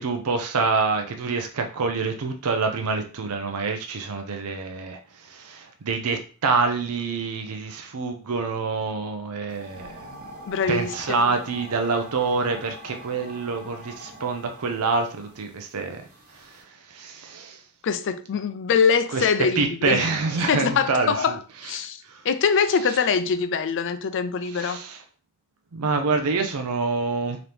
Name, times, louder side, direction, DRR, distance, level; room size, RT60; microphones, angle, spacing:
voice 1, 0.0-10.2 10.7-17.6 19.1-19.3 19.6-21.4 21.6-22.2 22.9-23.0 24.4-25.0 25.7-27.4, right 4 dB, 75° right, 0.6 m, -27 dB
sound 1, 9.5-16.6, equal, 40° right, 1.2 m, -44 dB
voice 2, 10.5-11.3 17.8-20.0 20.4-24.8, left 6 dB, 55° left, 0.4 m, -24 dB
3.8 x 2.9 x 3.4 m
head